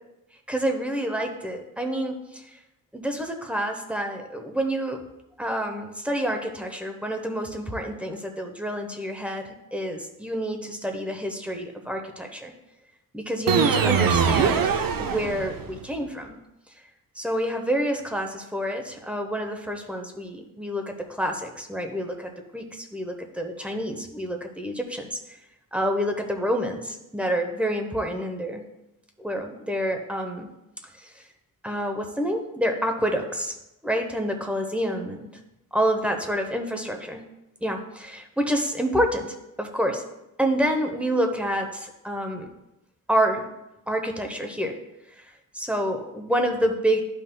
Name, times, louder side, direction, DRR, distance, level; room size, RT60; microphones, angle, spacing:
voice 1, 0.5-2.4 2.9-5.0 5.4-12.5 13.1-14.7 15.0-16.4 17.2-25.4 25.7-28.6 29.2-30.5 31.0-31.1 31.6-33.5 33.8-35.3 35.7-37.2 37.6-40.0 40.4-42.5 43.1-43.5 43.9-44.8 45.2-45.3 45.5-47.0, equal, 5° right, 4 dB, 0.7 m, -28 dB
sound 1, 13.5-15.8, right 6 dB, 70° right, 0.7 m, -22 dB
11.0 x 5.6 x 2.2 m, 0.91 s
wide cardioid pair, 130°, 35 cm